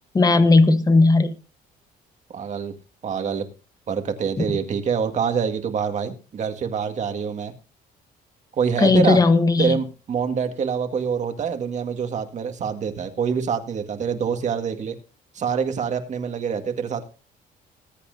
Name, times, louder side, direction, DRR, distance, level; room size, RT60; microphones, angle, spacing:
voice 1, 0.1-1.3 8.8-9.8, left 3 dB, 20° left, 1.1 m, -16 dB
voice 2, 2.3-2.7 3.0-3.4 3.9-7.5 8.6-9.2 9.6-15.0 15.3-17.1, right 6 dB, 45° right, 1.9 m, -26 dB
20.0 x 8.5 x 2.7 m
cardioid pair, 110°, 17 cm